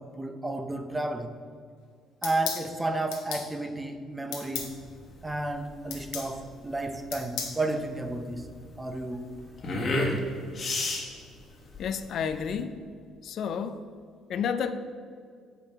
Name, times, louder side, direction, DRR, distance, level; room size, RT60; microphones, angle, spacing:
voice 1, 0.0-1.4 2.2-4.8 5.2-8.5 8.8-9.3 9.7-10.3, right 2 dB, 10° right, 7 dB, 0.6 m, -32 dB
sound 1, 2.2-2.6 3.1-3.5 4.3-4.7 5.9-6.3 7.1-7.6, left 7 dB, 85° left, 1.3 m, -34 dB
sound 2, 4.6-12.6, left 2 dB, 35° left, 1.3 m, -34 dB
voice 2, 11.8-12.8 13.2-13.8 14.3-14.7, left 7 dB, 55° left, 10 dB, 0.4 m, -30 dB
7.3 x 5.5 x 4.6 m, 2.2 s
cardioid pair, 110°, 0 cm